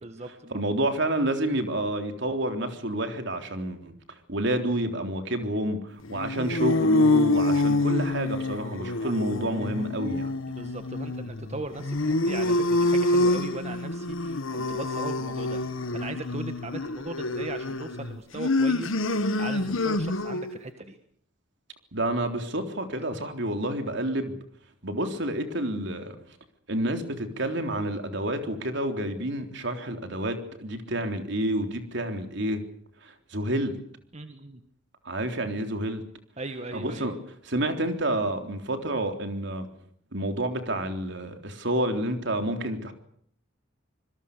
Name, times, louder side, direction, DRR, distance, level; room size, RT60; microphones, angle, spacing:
voice 1, 0.0-0.6 9.0-9.1 10.5-15.6 15.9-20.9 34.1-34.6 36.4-37.1, right 2 dB, 35° right, 7 dB, 1.6 m, -38 dB
voice 2, 0.5-10.3 21.9-24.4 24.8-26.2 26.7-32.6 33.0-33.7 35.0-36.0 36.7-37.1 37.4-39.7 40.1-42.9, right 1 dB, 60° right, 6 dB, 3.6 m, -29 dB
sound 1, 6.1-20.6, left 2 dB, 85° left, 1.4 m, -26 dB
26.5 x 21.5 x 6.8 m, 0.64 s
head